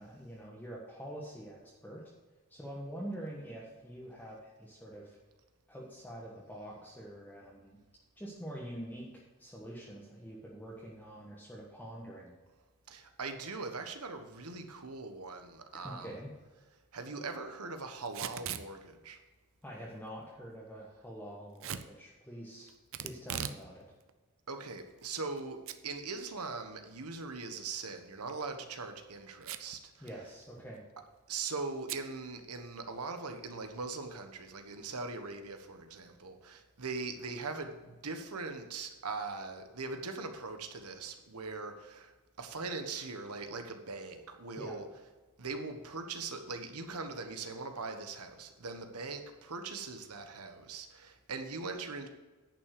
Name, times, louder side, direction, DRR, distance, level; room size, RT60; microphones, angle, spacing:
voice 1, 0.0-2.0 2.5-5.2 5.7-7.8 8.2-12.3 15.8-16.3 19.6-22.7 23.0-23.8 30.0-30.8 44.6-44.8, right 1 dB, 10° left, -5 dB, 1.4 m, -45 dB
voice 2, 12.9-16.1 16.9-19.2 24.5-25.6 25.8-30.1 31.3-42.1 42.4-44.9 45.4-52.1, right 4 dB, 80° right, 6 dB, 1.3 m, -41 dB
Packing tape duct tape / Tearing, 18.0-18.7 21.6-21.9 22.9-23.6 24.0-24.1 24.8-25.4 25.7-25.8 26.2-26.3 28.2-28.5 29.4-29.8 30.1-30.2 30.4-30.8 31.9-32.1, right 9 dB, 60° right, 0.6 m, -39 dB
10.5 x 5.8 x 6.7 m, 1.2 s
head